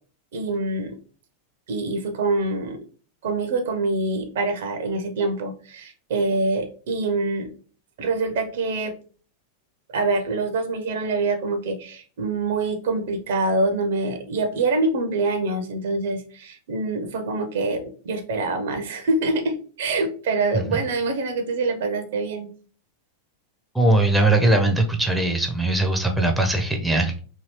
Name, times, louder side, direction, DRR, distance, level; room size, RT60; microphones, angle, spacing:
voice 1, 0.3-1.0 1.7-2.8 3.2-7.5 8.0-8.9 9.9-22.5, right 3 dB, 55° right, 7 dB, 0.5 m, -25 dB
voice 2, 23.7-27.2, right 2 dB, 5° right, 4 dB, 0.4 m, -20 dB
2.8 x 2.7 x 2.9 m, 0.42 s
figure-of-eight pair, 90°, 0 cm